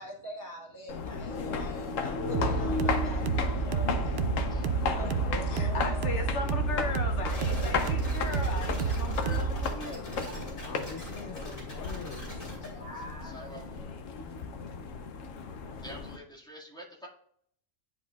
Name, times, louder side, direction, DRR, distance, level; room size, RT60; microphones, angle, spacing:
voice 1, 0.0-6.3 10.9-11.7 12.3-13.9, equal, 15° right, -1 dB, 1.0 m, -46 dB
sound 1, 0.9-16.2, left 5 dB, 85° left, 1.2 m, -35 dB
sound 2, 2.3-9.7, right 5 dB, 65° right, 0.7 m, -30 dB
voice 2, 5.5-10.1 10.6-12.3, left 4 dB, 65° left, 5 dB, 1.0 m, -38 dB
sound 3, 7.3-12.7, left 1 dB, 45° left, 2.9 m, -41 dB
voice 3, 13.3-13.8 15.8-17.1, right 1 dB, 5° left, -4 dB, 1.8 m, -46 dB
10.5 x 4.9 x 2.3 m, 0.66 s
omnidirectional pair, 1.3 m